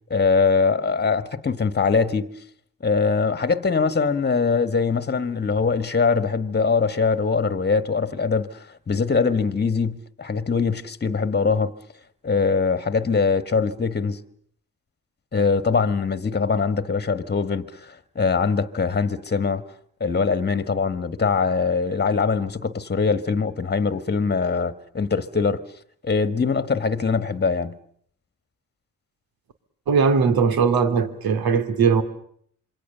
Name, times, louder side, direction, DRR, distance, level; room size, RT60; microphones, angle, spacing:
voice 1, 0.1-2.3 2.8-11.7 12.2-14.2 15.3-19.6 20.0-25.6 26.0-27.8, left 5 dB, 30° left, 1.6 m, -22 dB
voice 2, 29.9-32.0, right 5 dB, 75° right, 2.6 m, -19 dB
27.0 x 23.5 x 6.8 m
cardioid pair, 85°, 36 cm